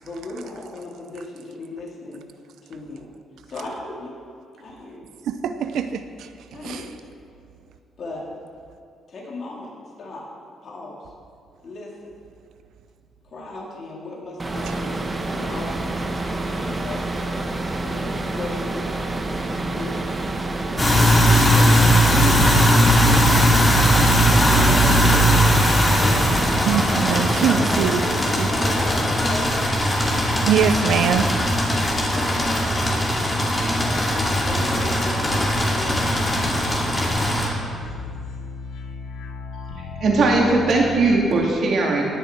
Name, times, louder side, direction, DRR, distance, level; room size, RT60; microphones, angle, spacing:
voice 1, 0.0-2.2 2.6-3.0 3.5-4.1 4.6-5.1 6.5-7.0 8.0-8.2 9.1-9.7 10.0-10.2 10.6-10.9 11.6-12.1 13.3-15.7 16.2-17.1 17.8-18.9 19.4-20.0 20.8-22.6 24.2-25.3 26.0-26.4 27.1-29.5 32.0-32.6 33.7-36.0, left 2 dB, 50° left, -4 dB, 3.0 m, -35 dB
voice 2, 5.3-6.3 6.6-6.9 26.6-28.0 28.4-28.5 30.5-31.3, right 8 dB, 75° right, 9 dB, 0.6 m, -22 dB
sound 1, 14.4-27.9, right 2 dB, 25° right, 1.0 m, -28 dB
sound 2, 20.8-37.5, equal, 25° left, 2.4 m, -19 dB
sound 3, 35.2-41.2, left 3 dB, 90° left, 0.8 m, -36 dB
voice 3, 40.0-42.0, right 3 dB, 60° right, -1 dB, 2.4 m, -19 dB
18.0 x 6.9 x 4.5 m, 2.3 s
cardioid pair, 90°, 0 cm